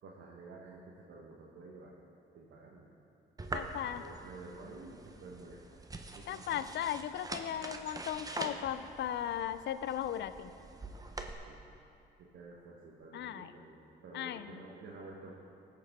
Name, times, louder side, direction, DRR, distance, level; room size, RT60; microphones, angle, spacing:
voice 1, 0.0-1.9 2.3-2.9 3.6-5.8 6.1-6.6 11.5-11.6 12.2-13.8 14.0-15.3, right 3 dB, 70° right, -3 dB, 1.2 m, -51 dB
sound 1, 3.4-11.3, right 2 dB, 20° right, 0.7 m, -44 dB
voice 2, 3.5-4.0 6.3-10.5 13.1-13.5 14.1-14.6, left 10 dB, 65° left, 13 dB, 0.5 m, -37 dB
16.0 x 6.8 x 3.6 m, 2.7 s
cardioid pair, 90°, 20 cm